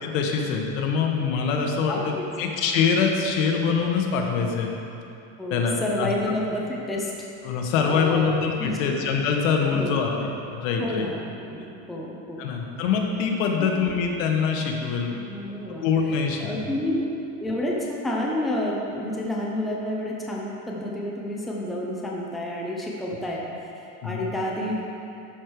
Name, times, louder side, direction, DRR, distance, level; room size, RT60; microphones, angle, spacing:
voice 1, 0.0-4.7 5.5-6.1 7.4-11.1 12.4-15.2 15.8-16.7 24.0-24.3, left 5 dB, 75° left, 1 dB, 1.3 m, -24 dB
voice 2, 1.9-2.3 5.4-7.1 7.8-8.3 8.6-8.9 9.7-10.0 10.8-12.4 13.6-13.7 15.1-15.9 16.4-16.9 17.4-23.4 23.8-24.8, left 1 dB, ahead, -4 dB, 0.6 m, -30 dB
11.5 x 5.1 x 4.7 m, 2.7 s
cardioid pair, 170°, 39 cm